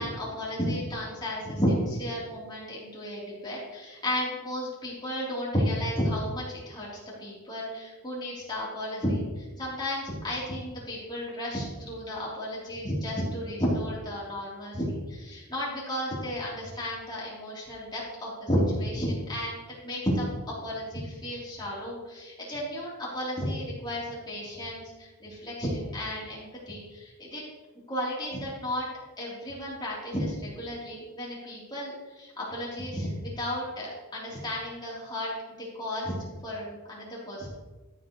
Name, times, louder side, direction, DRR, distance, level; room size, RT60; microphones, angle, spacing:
voice 1, 0.0-6.9 7.2-19.6 19.8-27.4 27.9-28.9 29.2-35.3 35.6-36.1 36.4-37.5, equal, 20° left, -6 dB, 3.6 m, -32 dB
13.5 x 7.7 x 3.2 m, 1.2 s
head